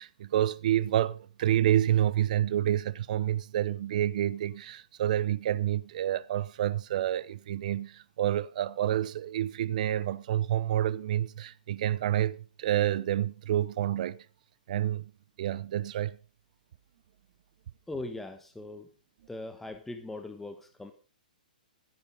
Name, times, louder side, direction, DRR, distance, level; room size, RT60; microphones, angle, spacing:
voice 1, 0.0-14.3 14.7-15.1 15.4-16.2, right 11 dB, 55° right, 0.7 m, -28 dB
voice 2, 17.9-18.9 19.3-20.9, left 2 dB, 5° left, 1.2 m, -40 dB
14.0 x 10.5 x 5.3 m
hypercardioid pair, 130°, 5 cm